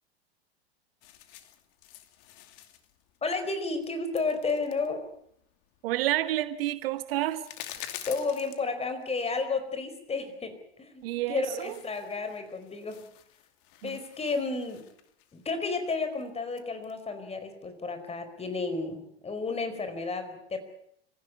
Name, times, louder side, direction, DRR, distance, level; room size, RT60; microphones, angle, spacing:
sound 1, 1.0-9.2 9.5-9.6 11.0-11.1 11.4-17.0, left 12 dB, 55° left, 2.5 m, -49 dB
voice 1, 3.2-5.0 8.1-13.0 13.8-14.8 15.3-20.6, left 3 dB, 20° left, 9 dB, 4.7 m, -32 dB
voice 2, 5.8-7.5 11.0-11.7 13.8-14.0, right 15 dB, 60° right, 12 dB, 1.5 m, -29 dB
25.5 x 15.5 x 9.6 m, 0.74 s
hypercardioid pair, 90°, 32 cm